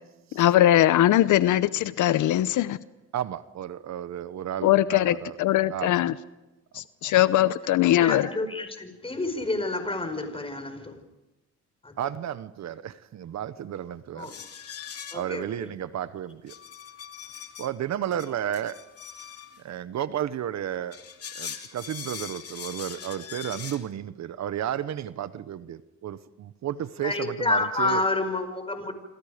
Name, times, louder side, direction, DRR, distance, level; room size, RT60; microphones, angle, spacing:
voice 1, 0.3-2.8 4.6-6.1 6.7-8.3, left 13 dB, 80° left, 15 dB, 0.8 m, -21 dB
voice 2, 3.1-5.4 5.7-5.9 6.7-7.2 12.0-14.3 15.1-16.5 17.6-18.8 19.6-21.0 21.3-28.0, right 10 dB, 65° right, 14 dB, 1.1 m, -33 dB
voice 3, 8.0-11.0 11.8-11.9 14.2-14.4 15.1-15.7 27.0-28.9, left 2 dB, 20° left, 8 dB, 5.1 m, -29 dB
sound 1, 14.2-15.4 16.5-17.7 18.1-19.6 20.8-23.8, left 7 dB, 50° left, 2.6 m, -41 dB
27.5 x 26.5 x 5.1 m, 1.0 s
cardioid pair, 90°, 30 cm